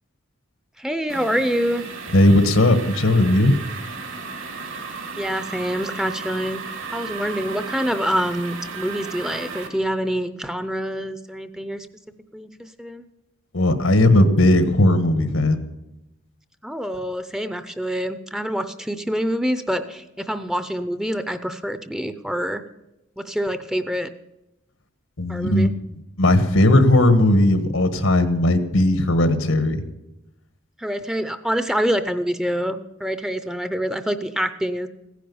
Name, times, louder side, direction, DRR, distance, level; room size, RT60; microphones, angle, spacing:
voice 1, 0.8-1.8 5.2-6.6 6.9-11.9 12.3-13.0 16.6-22.6 23.2-24.1 25.3-25.7 30.8-34.9, equal, 5° right, 11 dB, 0.5 m, -26 dB
sound 1, 1.1-9.7, right 5 dB, 75° right, 2.4 m, -35 dB
voice 2, 2.1-3.6 13.5-15.6 25.2-25.7 26.2-29.8, left 1 dB, 85° left, 10 dB, 1.5 m, -17 dB
16.0 x 10.0 x 7.0 m, 0.93 s
head